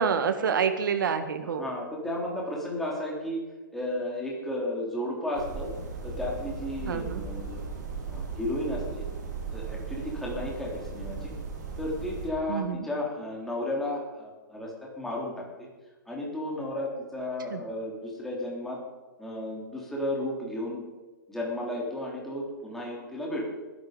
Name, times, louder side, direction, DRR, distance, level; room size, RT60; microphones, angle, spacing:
voice 1, 0.0-1.7 6.9-7.2 12.5-12.9 17.5-17.6, right 6 dB, 75° right, 8 dB, 2.0 m, -27 dB
voice 2, 1.4-3.4 3.7-5.7 6.0-7.6 8.1-9.0 9.5-11.3 11.8-15.3 15.6-15.7 16.1-18.8 19.2-20.8 21.3-23.5, left 1 dB, 5° left, -3 dB, 3.4 m, -33 dB
sound 1, 5.3-12.3, right 5 dB, 60° right, 5.0 m, -37 dB
20.5 x 11.0 x 5.2 m, 1.3 s
hypercardioid pair, 155°, 11 cm